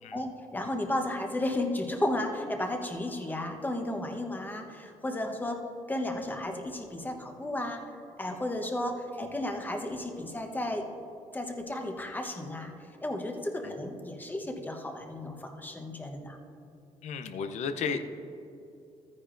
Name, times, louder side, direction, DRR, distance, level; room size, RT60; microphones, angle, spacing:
voice 1, 0.1-5.6 5.9-7.8 8.2-10.8 11.3-12.7 13.0-16.4, left 1 dB, 15° left, 4 dB, 1.0 m, -33 dB
voice 2, 17.0-18.1, left 5 dB, 70° left, 8 dB, 0.7 m, -34 dB
13.5 x 9.7 x 2.6 m, 2.8 s
cardioid pair, 105°, 12 cm